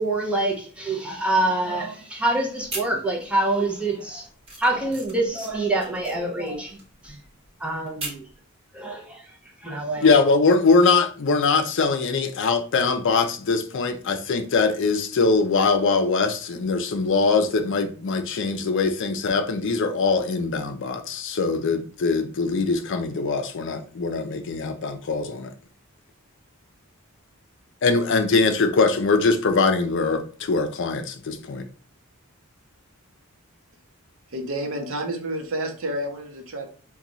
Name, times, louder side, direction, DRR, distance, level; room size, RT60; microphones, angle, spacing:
voice 1, 0.0-4.3 4.6-7.2 7.6-8.2 8.7-9.2 9.6-10.1, right 2 dB, 5° right, 0.7 m, -26 dB
sound 1, 2.6-3.5 3.8-8.3, right 2 dB, 25° right, 1.3 m, -38 dB
voice 2, 10.0-25.5 27.8-31.6, left 4 dB, 60° left, 0.5 m, -22 dB
voice 3, 34.3-36.7, right 1 dB, 65° right, 0.7 m, -29 dB
2.9 x 2.3 x 3.8 m
head